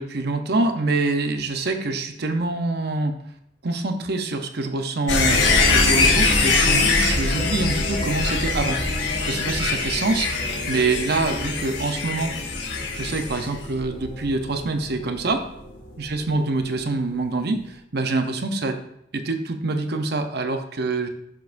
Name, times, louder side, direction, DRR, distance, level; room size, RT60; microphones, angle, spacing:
voice 1, 0.0-3.2 3.6-8.8 9.3-10.3 10.7-12.3 13.0-15.5 16.0-18.8 19.1-21.1, right 3 dB, 60° right, 6 dB, 0.8 m, -25 dB
sound 1, 5.1-15.9 16.2-16.3, left 3 dB, 65° left, 1.8 m, -23 dB
12.5 x 7.2 x 2.6 m, 0.75 s
head